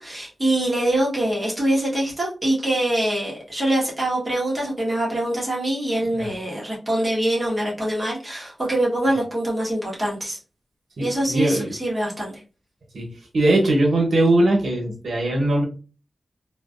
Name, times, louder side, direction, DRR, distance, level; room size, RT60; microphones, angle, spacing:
voice 1, 0.0-10.4 11.0-12.3, right 1 dB, 30° right, -4 dB, 1.3 m, -24 dB
voice 2, 11.0-11.7 12.9-13.0 13.3-15.7, right 1 dB, 85° right, 0 dB, 1.0 m, -20 dB
3.1 x 2.4 x 2.4 m, 0.34 s
wide cardioid pair, 70°, 0 cm